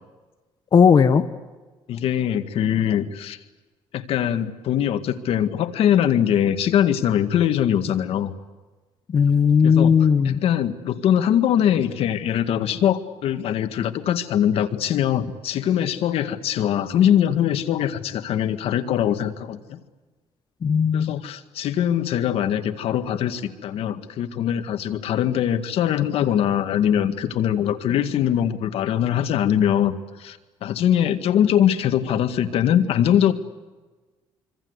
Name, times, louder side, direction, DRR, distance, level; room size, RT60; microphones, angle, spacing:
voice 1, 0.7-1.2 9.1-10.4 20.6-21.1, left 6 dB, 40° left, 9 dB, 1.3 m, -16 dB
voice 2, 1.9-3.4 3.9-8.3 9.6-19.8 20.9-33.3, left 10 dB, 70° left, 9 dB, 2.0 m, -22 dB
26.0 x 25.5 x 8.2 m, 1.3 s
cardioid pair, 110°, 10 cm